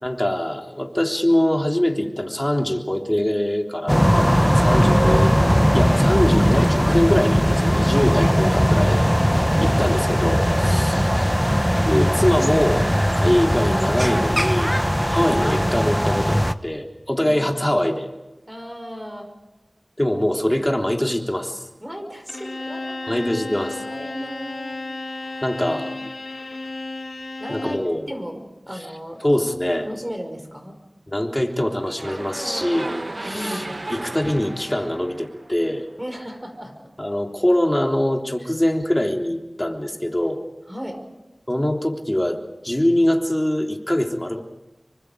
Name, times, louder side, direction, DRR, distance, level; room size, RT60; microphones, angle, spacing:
voice 1, 0.0-5.3 5.7-9.1 9.6-11.2 11.8-12.9 13.2-14.8 15.1-18.1 20.0-21.6 23.1-23.8 25.4-25.8 27.5-28.0 29.2-29.9 31.1-33.6 33.9-35.8 37.0-40.4 41.5-44.4, left 1 dB, 20° left, 2 dB, 3.4 m, -23 dB
sound 1, 3.9-16.5, equal, ahead, 1.0 m, -19 dB
voice 2, 9.4-10.0 10.6-11.0 15.1-15.4 17.3-17.5 18.5-19.3 21.8-23.3 23.8-25.5 27.4-27.8 28.1-29.5 29.8-30.7 33.2-33.8 36.0-36.9 38.4-38.5 40.7-41.0, equal, 15° right, 5 dB, 5.5 m, -35 dB
Bowed string instrument, 22.3-28.0, left 2 dB, 80° left, 4.4 m, -33 dB
sound 2, 31.8-36.0, right 2 dB, 50° right, 1.1 m, -34 dB
27.0 x 24.5 x 5.1 m, 1.0 s
wide cardioid pair, 45°, 0 cm